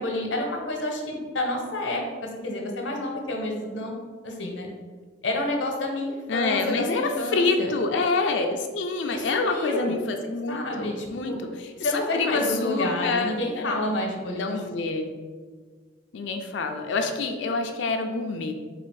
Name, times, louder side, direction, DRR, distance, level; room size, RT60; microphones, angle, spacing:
voice 1, 0.0-3.9 4.2-4.7 5.2-7.7 9.1-10.0 10.5-11.4 11.8-14.6, left 1 dB, 90° left, 1 dB, 0.9 m, -29 dB
voice 2, 6.3-11.7 12.1-13.8 14.3-15.1 16.1-18.5, left 3 dB, 70° left, 4 dB, 0.4 m, -27 dB
4.1 x 2.4 x 4.7 m, 1.5 s
head